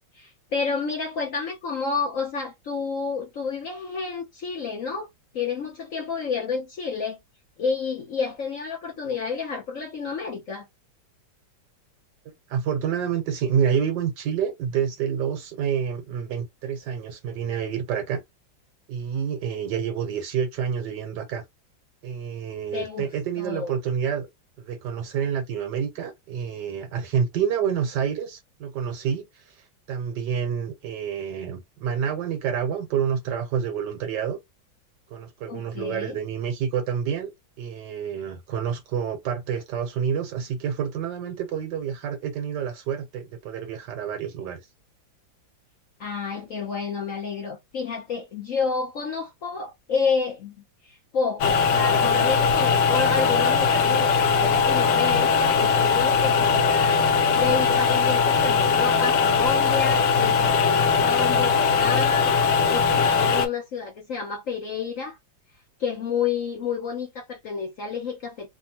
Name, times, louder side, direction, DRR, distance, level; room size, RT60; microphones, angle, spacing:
voice 1, 0.1-5.1 5.3-7.2 7.6-10.6 22.7-23.1 23.4-23.7 35.5-36.2 46.0-50.6 50.8-57.1 57.3-62.3 62.7-65.2 65.8-68.5, left 5 dB, 60° left, 0.9 m, -30 dB
voice 2, 12.5-18.2 18.9-21.4 22.0-24.3 24.6-34.4 35.1-37.3 37.6-44.6, right 7 dB, 70° right, 1.3 m, -28 dB
sound 1, 51.4-63.5, left 5 dB, 75° left, 1.4 m, -20 dB
3.4 x 2.1 x 2.8 m
omnidirectional pair, 2.1 m